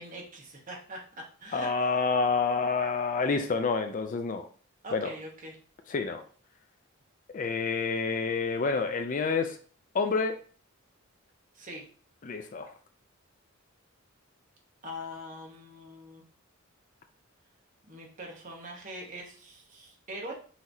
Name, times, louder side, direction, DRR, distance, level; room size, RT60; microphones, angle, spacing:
voice 1, 0.0-1.7 4.8-5.6 11.5-11.8 14.8-16.2 17.9-20.3, equal, 40° right, 0 dB, 1.1 m, -42 dB
voice 2, 1.5-4.5 4.9-5.1 5.9-6.2 7.3-9.6 9.9-10.4 12.2-12.7, left 4 dB, 40° left, 7 dB, 0.4 m, -28 dB
5.7 x 3.0 x 2.7 m, 0.43 s
head